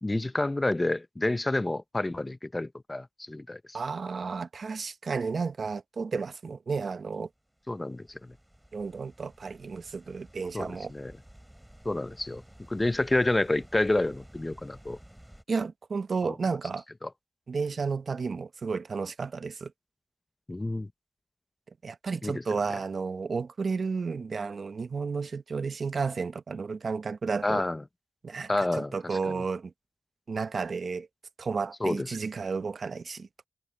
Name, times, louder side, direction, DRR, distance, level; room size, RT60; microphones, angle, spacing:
voice 1, 0.0-3.8 7.7-8.3 10.5-11.1 11.8-12.4 12.7-15.0 16.2-16.3 17.0-17.1 20.5-20.9 22.2-22.4 27.4-27.8 28.5-29.3 31.8-32.2, left 2 dB, 30° left, 0.6 m, -29 dB
voice 2, 3.7-7.3 8.7-10.9 15.5-16.8 17.5-19.7 21.8-27.6 28.2-29.7 30.3-31.1 31.4-33.3, right 5 dB, 70° right, 0.8 m, -32 dB
sound 1, 7.5-15.4, equal, 10° right, 4.1 m, -53 dB
open air
cardioid pair, 45°, 0 cm